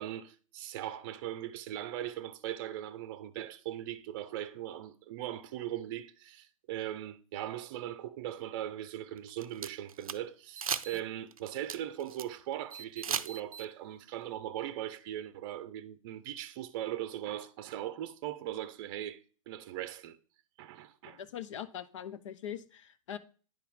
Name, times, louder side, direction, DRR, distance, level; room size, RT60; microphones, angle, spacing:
voice 1, 0.0-20.2 20.6-21.2, right 12 dB, 40° right, 0.6 m, -39 dB
sound 1, 9.2-10.2 10.6-11.0 11.3-12.2 12.7-13.7, right 7 dB, 85° right, 0.5 m, -36 dB
voice 2, 21.0-23.2, left 9 dB, 60° left, 0.8 m, -42 dB
10.0 x 4.5 x 3.6 m
hypercardioid pair, 120°, 18 cm